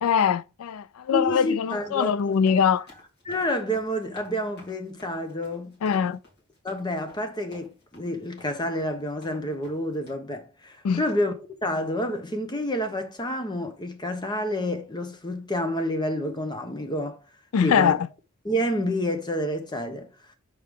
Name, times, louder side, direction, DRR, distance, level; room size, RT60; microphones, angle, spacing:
voice 1, 0.0-2.9 5.8-6.2 10.8-11.0 17.5-18.1, left 7 dB, 80° left, 0.4 m, -22 dB
voice 2, 1.1-2.3 3.2-5.7 6.6-11.3 11.6-17.2 17.6-18.0 18.4-20.1, equal, 20° left, 0.9 m, -29 dB
sound 1, 2.2-10.1, left 2 dB, 50° left, 2.9 m, -51 dB
6.5 x 4.8 x 3.6 m
head